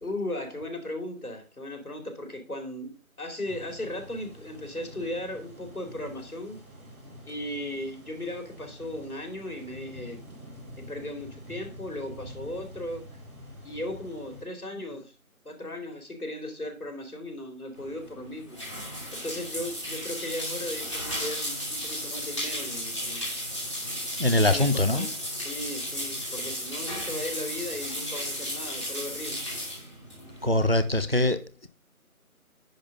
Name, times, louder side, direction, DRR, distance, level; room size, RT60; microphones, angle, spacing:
voice 1, 0.0-2.9 3.2-6.6 7.3-10.2 10.9-13.0 13.6-15.1 15.4-18.6 18.9-23.2 24.4-29.5, left 1 dB, 80° left, 3.0 m, -37 dB
sound 1, 3.4-14.4, left 1 dB, 80° right, 4.6 m, -46 dB
sound 2, 17.7-31.0, equal, 20° left, 2.5 m, -34 dB
voice 2, 24.2-25.1 30.4-31.7, left 1 dB, 45° right, 0.6 m, -23 dB
10.0 x 3.7 x 5.2 m
figure-of-eight pair, 180°, 44 cm